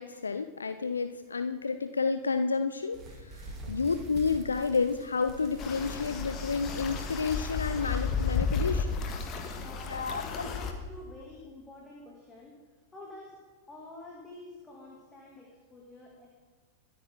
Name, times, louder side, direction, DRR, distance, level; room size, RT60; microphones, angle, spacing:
voice 1, 0.0-9.0 9.9-10.5, left 4 dB, 75° left, 10 dB, 0.6 m, -30 dB
sound 1, 2.9-8.6 9.0-9.3 9.8-9.9 10.4-10.5, right 1 dB, 25° right, 2.9 m, -45 dB
sound 2, 5.6-10.7, left 5 dB, 35° left, 1.6 m, -33 dB
voice 2, 9.3-12.6 12.9-13.4 13.7-16.3, left 2 dB, 15° left, -2 dB, 2.6 m, -48 dB
23.5 x 8.8 x 3.8 m, 1.5 s
figure-of-eight pair, 90°, 0 cm